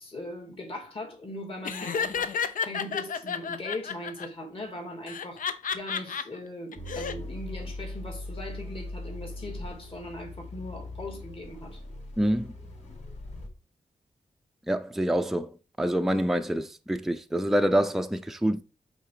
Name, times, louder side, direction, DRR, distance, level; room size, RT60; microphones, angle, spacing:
voice 1, 0.0-5.4 5.7-11.8, left 1 dB, 40° left, 2.7 m, -39 dB
Laughter, 1.6-4.3 5.1-6.2 6.7-7.1, left 6 dB, 80° left, 0.6 m, -31 dB
sound 1, 6.8-13.5, left 1 dB, 60° left, 3.4 m, -40 dB
voice 2, 12.2-12.5 14.7-15.5 15.8-18.6, equal, ahead, 0.4 m, -26 dB
8.2 x 4.0 x 4.8 m
wide cardioid pair, 140°, 14 cm